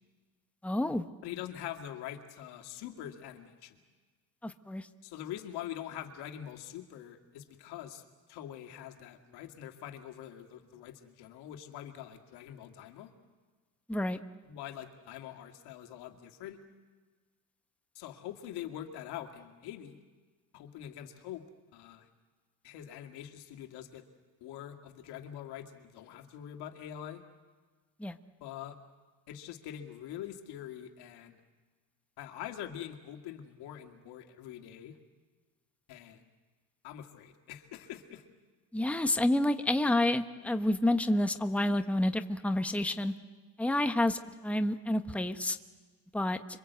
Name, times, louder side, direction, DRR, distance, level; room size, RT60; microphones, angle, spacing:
voice 1, 0.6-1.1 4.4-4.9 13.9-14.2 28.0-28.2 38.7-43.1 43.6-45.6 46.1-46.4, left 1 dB, 5° left, 7 dB, 1.2 m, -29 dB
voice 2, 1.2-3.8 5.0-8.0 8.3-13.1 14.4-16.6 18.0-20.0 20.5-21.4 21.7-22.1 22.6-24.0 24.4-27.2 28.4-28.8 29.3-31.4 32.2-35.0 35.9-36.2 36.8-38.2, left 11 dB, 80° left, 5 dB, 2.3 m, -44 dB
26.5 x 24.0 x 8.2 m, 1.4 s
cardioid pair, 105°, 39 cm